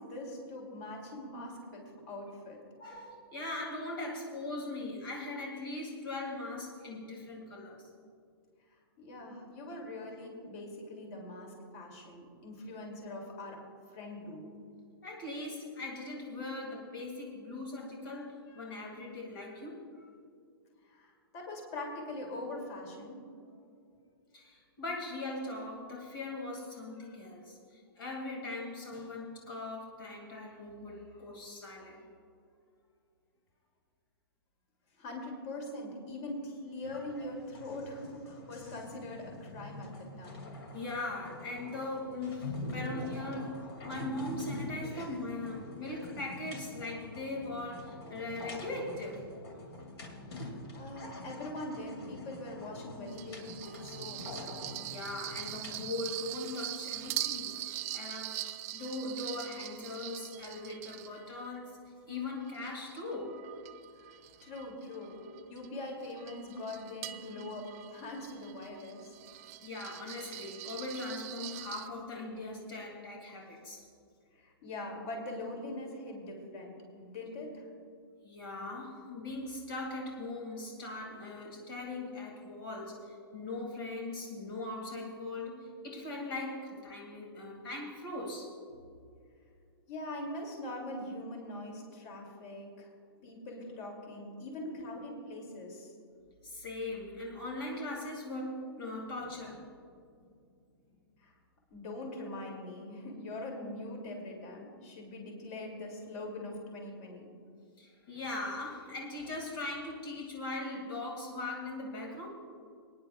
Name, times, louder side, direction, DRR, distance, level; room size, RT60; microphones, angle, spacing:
voice 1, 0.0-2.6 9.0-13.6 13.9-14.5 20.8-23.5 35.0-40.5 50.3-54.5 63.9-65.1 65.5-69.1 74.3-77.7 89.9-92.9 93.2-95.9 101.2-101.3 101.7-107.3, left 1 dB, 40° left, 0 dB, 2.6 m, -42 dB
voice 2, 2.8-7.9 15.0-20.1 24.3-32.0 40.7-49.2 54.8-58.4 58.7-61.8 62.1-63.4 69.6-73.8 78.2-88.5 96.4-99.7 107.8-112.3, left 2 dB, 60° left, -1 dB, 2.2 m, -40 dB
sound 1, 36.8-55.9, left 1 dB, 85° left, 2.3 m, -45 dB
sound 2, 53.1-61.6 62.1-71.9, right 14 dB, 40° right, 0.4 m, -43 dB
25.0 x 9.9 x 2.3 m, 2.4 s
hypercardioid pair, 155°, 13 cm